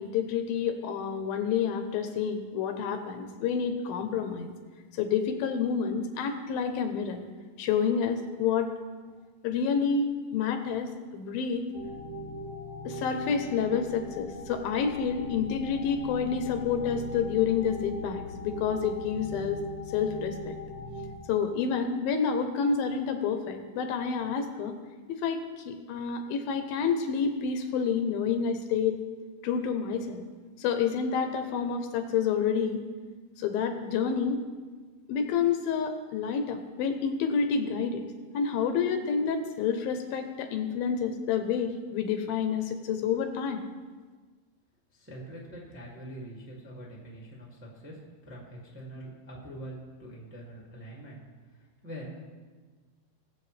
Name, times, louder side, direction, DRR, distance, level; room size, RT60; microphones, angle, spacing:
voice 1, 0.0-4.5 5.0-7.2 7.6-8.7 9.4-11.7 12.8-19.6 19.9-20.5 21.3-24.7 25.1-29.0 29.4-30.2 30.6-32.8 33.4-34.4 35.1-38.0 38.3-43.6, left 6 dB, 80° left, 6 dB, 2.5 m, -29 dB
sound 1, 11.7-21.1, left 1 dB, 60° right, 4.3 m, -40 dB
voice 2, 45.0-48.0 48.3-51.2 51.8-52.2, right 1 dB, 5° right, -4 dB, 1.2 m, -44 dB
20.0 x 7.4 x 3.3 m, 1.4 s
omnidirectional pair, 4.3 m